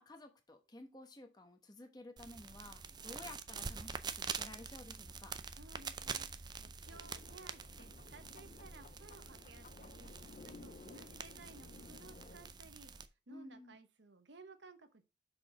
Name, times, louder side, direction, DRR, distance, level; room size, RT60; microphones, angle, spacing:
voice 1, 0.0-5.3 13.3-13.8, left 1 dB, 20° left, 1.0 m, -53 dB
sound 1, 2.2-13.1, right 5 dB, 20° right, 0.4 m, -46 dB
voice 2, 5.6-12.9 13.3-15.0, right 3 dB, 65° right, 1.1 m, -58 dB
sound 2, 6.8-12.5, left 3 dB, 40° left, 0.4 m, -57 dB
6.1 x 5.0 x 4.9 m
head